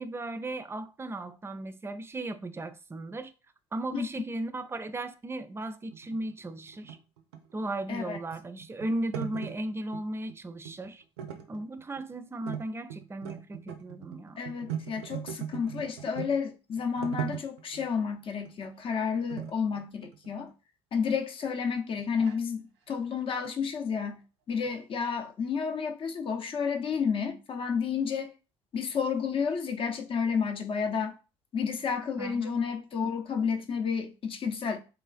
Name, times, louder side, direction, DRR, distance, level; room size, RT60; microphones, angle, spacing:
voice 1, 0.0-3.3 3.7-7.0 7.5-11.0 11.5-14.4 32.2-32.6, right 2 dB, 20° right, 0.3 m, -36 dB
sound 1, 5.9-10.0 10.3-10.9 11.2-12.1 12.5-12.7 12.9-16.4 16.8-17.9 18.5-18.7 19.3-20.5 21.1-21.2 21.7-22.4 23.3-23.5 23.8-23.9 24.1-24.2 24.6-24.8, right 10 dB, 90° right, 0.4 m, -39 dB
voice 2, 14.4-20.5 20.9-24.2 24.5-28.3 28.7-31.1 31.5-34.8, left 6 dB, 40° left, 0.6 m, -31 dB
3.1 x 2.3 x 2.4 m
hypercardioid pair, 65°, 13 cm